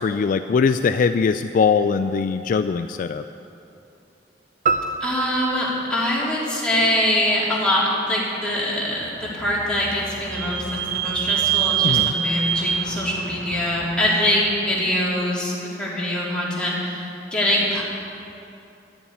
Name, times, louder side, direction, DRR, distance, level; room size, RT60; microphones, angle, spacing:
voice 1, 0.0-3.2 11.8-12.1, left 5 dB, 50° left, 9 dB, 0.3 m, -21 dB
sound 1, 4.7-7.1, right 4 dB, 45° right, 0.7 m, -28 dB
voice 2, 5.0-17.8, left 1 dB, 5° left, -7 dB, 3.0 m, -23 dB
Vehicle / Squeak, 8.9-14.5, right 10 dB, 75° right, 1.0 m, -26 dB
12.0 x 7.1 x 9.3 m, 2.7 s
head